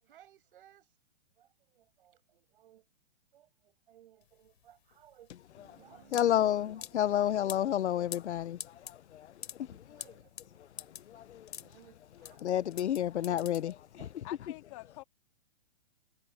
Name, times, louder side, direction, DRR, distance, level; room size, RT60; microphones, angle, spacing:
voice 1, 0.0-1.0 1.4-2.9 3.3-5.3 5.6-6.8 7.1-7.3 8.0-8.4 9.6-11.0 11.5-12.9 13.1-13.4 14.0-14.3, right 11 dB, 50° right, 7.4 m, -61 dB
sound 1, 4.2-14.1, left 10 dB, 60° left, 3.5 m, -47 dB
voice 2, 6.1-10.1 10.6-11.5 12.4-14.2, left 11 dB, 75° left, 0.9 m, -31 dB
voice 3, 14.2-15.0, left 22 dB, 25° left, 3.0 m, -46 dB
hypercardioid pair, 175°, 34 cm